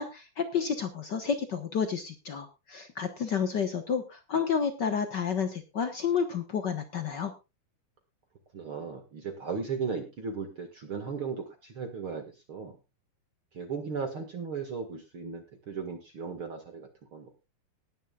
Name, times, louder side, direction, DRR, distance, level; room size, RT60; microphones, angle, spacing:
voice 1, 0.0-7.3, left 6 dB, 70° left, 8 dB, 1.0 m, -30 dB
voice 2, 8.5-12.8 13.5-17.3, right 5 dB, 45° right, 5 dB, 2.3 m, -36 dB
19.5 x 11.0 x 2.4 m, 0.27 s
omnidirectional pair, 3.8 m